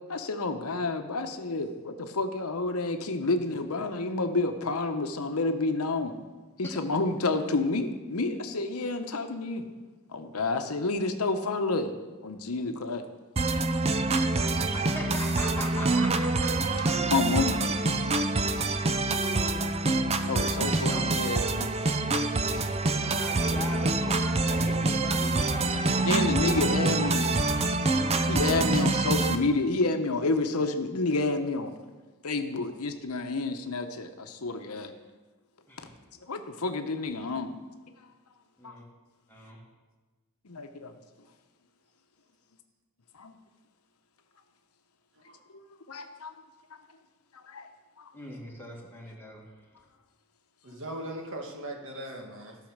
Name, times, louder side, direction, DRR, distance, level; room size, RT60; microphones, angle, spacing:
voice 1, 0.1-6.2 6.6-9.7 10.1-11.9 12.2-13.0 14.4-14.5 17.0-17.7 20.3-21.7 26.0-27.3 28.3-31.7 32.2-34.9 36.3-37.6 38.6-38.7 40.4-41.0 43.2-43.3 45.5-45.6 45.9-46.3 47.3-47.7 48.0-48.1, left 3 dB, 80° left, 7 dB, 0.9 m, -29 dB
sound 1, 13.4-29.4, right 2 dB, 30° right, 0.5 m, -26 dB
voice 2, 14.7-16.3 16.7-16.9 18.4-18.6 19.1-19.8 20.9-21.0 23.0-26.1 35.7-35.9 38.6-38.8 39.3-39.6 48.1-49.4, equal, 10° left, -3 dB, 2.0 m, -40 dB
voice 3, 50.6-52.6, right 1 dB, 60° right, 2 dB, 1.6 m, -39 dB
13.5 x 5.7 x 6.5 m, 1.3 s
head